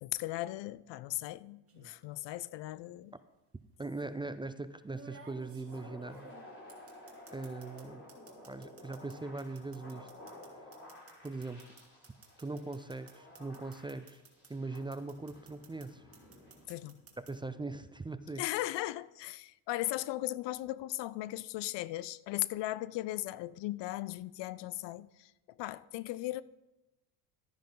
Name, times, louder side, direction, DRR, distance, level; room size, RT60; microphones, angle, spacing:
voice 1, 0.0-3.1 16.7-16.9 18.4-25.3 25.6-26.4, left 16 dB, 70° left, 0.5 m, -37 dB
sound 1, 1.7-2.0 3.2-3.3 4.9-7.8 8.1-14.5 14.7-15.9 16.1-17.3, right 4 dB, 30° right, 2.5 m, -55 dB
voice 2, 3.8-6.3 7.3-8.1 8.4-10.1 11.2-11.7 12.4-14.2 14.5-16.1 17.2-18.4, right 3 dB, 10° right, 0.4 m, -41 dB
sound 2, 5.3-17.6, left 1 dB, 30° left, 3.8 m, -54 dB
13.0 x 10.0 x 3.9 m
cardioid pair, 95°, 44 cm